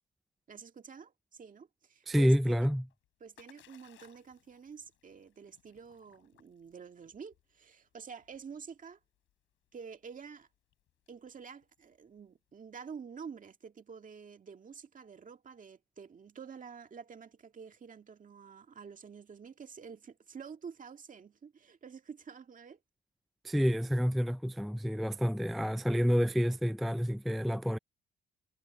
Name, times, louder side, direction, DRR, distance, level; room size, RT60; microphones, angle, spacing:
voice 1, 0.5-2.7 3.2-9.0 9.7-10.5 11.1-22.8, right 6 dB, 40° right, 2.0 m, -49 dB
voice 2, 2.1-2.8 23.4-27.8, equal, ahead, 0.3 m, -28 dB
Splash splatter, 2.8-12.5, left 13 dB, 85° left, 4.4 m, -66 dB
cardioid pair, 90°, 20 cm